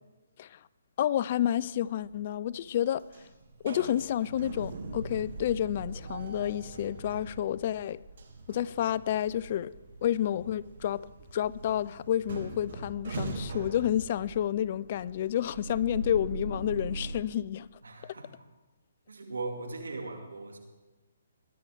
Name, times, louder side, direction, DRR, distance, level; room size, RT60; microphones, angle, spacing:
voice 1, 1.0-3.0 3.6-8.0 8.5-9.7 10.0-11.1 11.3-17.7 18.0-18.1, left 11 dB, 45° left, 0.4 m, -30 dB
sound 1, 1.6-2.1 2.5-17.2, right 2 dB, 60° right, 2.4 m, -41 dB
voice 2, 17.8-18.3 19.1-20.6, right 3 dB, 85° right, 2.5 m, -38 dB
20.5 x 11.5 x 3.6 m
hypercardioid pair, 145°, 0 cm